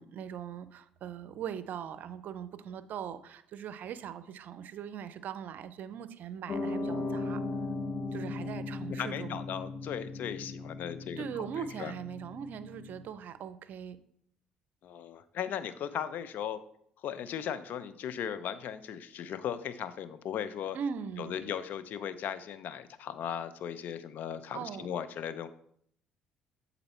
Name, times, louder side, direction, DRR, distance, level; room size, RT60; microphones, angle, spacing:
voice 1, 0.0-7.4 8.1-9.4 11.2-14.0 20.7-21.4 24.5-24.9, right 8 dB, 60° right, 13 dB, 0.5 m, -40 dB
Piano, 6.5-13.0, left 3 dB, 45° left, 1.3 m, -37 dB
voice 2, 9.0-11.9 14.8-16.6 17.0-20.8 21.2-25.5, left 9 dB, 60° left, 13 dB, 0.5 m, -37 dB
7.9 x 4.0 x 4.3 m, 0.67 s
hypercardioid pair, 60°, 3 cm